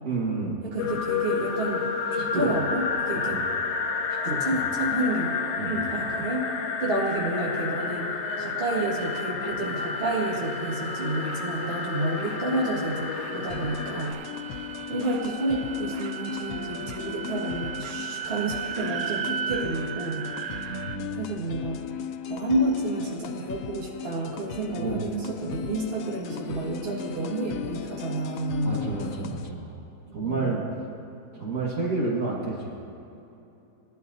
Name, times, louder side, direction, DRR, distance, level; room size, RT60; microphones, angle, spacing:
voice 1, 0.0-0.6 2.1-2.6 3.3-3.4 4.2-4.6 5.6-5.8 20.5-21.2 24.8-25.0 28.6-29.8 30.1-30.6 31.3-32.7, right 3 dB, 55° right, -4 dB, 2.1 m, -30 dB
voice 2, 0.6-1.8 2.1-3.4 4.4-6.4 6.8-14.4 14.9-20.3 20.6-21.8 22.3-28.8 30.1-30.6, right 2 dB, 40° right, -4 dB, 1.9 m, -30 dB
sound 1, 0.8-14.1, left 5 dB, 55° left, 0.9 m, -30 dB
sound 2, 7.8-21.0, right 9 dB, 70° right, 1.1 m, -38 dB
sound 3, 13.5-29.5, left 8 dB, 85° left, 1.2 m, -37 dB
19.5 x 12.0 x 2.7 m, 2.9 s
omnidirectional pair, 1.7 m